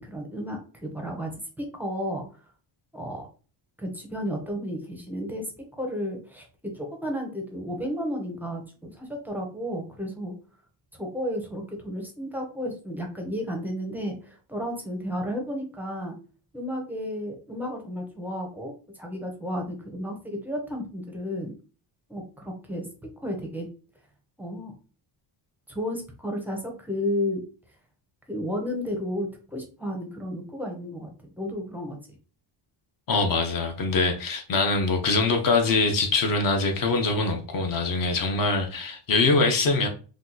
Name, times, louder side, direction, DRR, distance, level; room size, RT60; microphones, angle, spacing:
voice 1, 0.0-1.3 1.6-2.2 2.9-3.3 3.8-5.5 5.7-10.4 11.0-16.1 16.5-18.7 19.0-21.5 22.1-23.7 24.4-24.7 25.7-27.5 28.3-31.1 31.4-32.2, equal, 5° right, 0.6 m, -32 dB
voice 2, 33.1-39.9, left 3 dB, 45° left, 0.8 m, -23 dB
2.8 x 2.3 x 3.7 m
cardioid pair, 155°, 49 cm